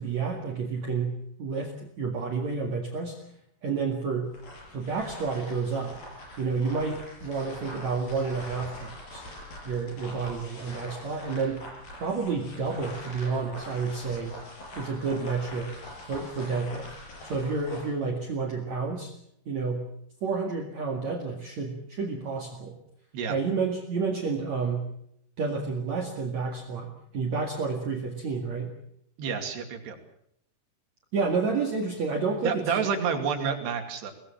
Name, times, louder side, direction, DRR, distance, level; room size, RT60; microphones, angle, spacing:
voice 1, 0.0-3.2 3.6-4.3 4.7-6.0 6.4-9.2 9.6-11.6 12.0-14.3 14.8-15.7 16.1-16.9 17.2-19.1 19.5-19.9 20.2-22.8 23.3-24.9 25.4-28.7 31.1-32.8, right 4 dB, 50° right, 2 dB, 3.0 m, -30 dB
sound 1, 4.2-17.9, left 1 dB, 60° left, 7.5 m, -44 dB
voice 2, 29.2-30.0 32.4-34.1, right 6 dB, 80° right, 5 dB, 4.7 m, -29 dB
24.5 x 19.5 x 7.3 m, 0.74 s
omnidirectional pair, 4.6 m